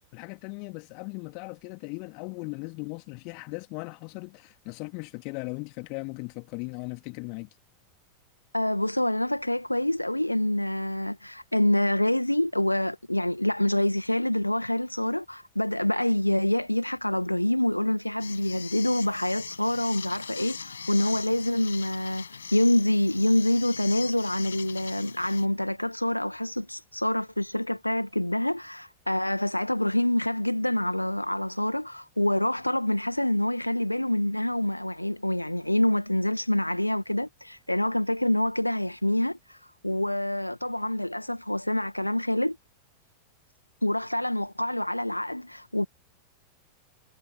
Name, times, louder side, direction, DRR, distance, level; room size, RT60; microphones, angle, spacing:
voice 1, 0.1-7.5, left 36 dB, 45° left, 3.1 m, -38 dB
voice 2, 8.5-39.6 39.8-42.6 43.8-45.8, left 1 dB, 85° left, 2.0 m, -26 dB
sound 1, 18.2-25.5, left 6 dB, 70° left, 6.1 m, -40 dB
figure-of-eight pair, 90°, 0 cm